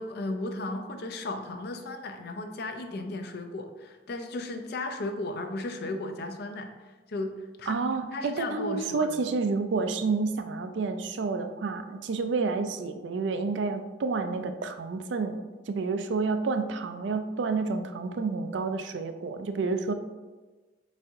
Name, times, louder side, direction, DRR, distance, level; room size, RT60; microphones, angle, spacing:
voice 1, 0.0-7.8 8.1-9.2, left 2 dB, 60° left, 6 dB, 0.5 m, -35 dB
voice 2, 7.7-15.4 15.7-19.9, right 4 dB, 70° right, 8 dB, 0.4 m, -29 dB
4.8 x 4.1 x 2.6 m, 1.2 s
head